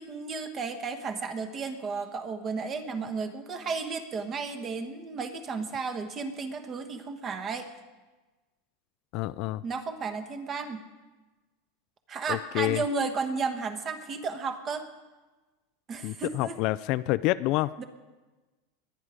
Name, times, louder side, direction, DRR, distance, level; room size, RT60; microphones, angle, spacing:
voice 1, 0.0-7.7 9.6-10.8 12.1-14.9 15.9-16.6 17.8-17.9, right 4 dB, 25° right, 8 dB, 1.3 m, -33 dB
voice 2, 9.1-9.6 12.3-12.8 16.0-17.7, left 18 dB, 45° left, 15 dB, 0.4 m, -28 dB
21.5 x 9.6 x 5.1 m, 1.2 s
supercardioid pair, 150°, 0 cm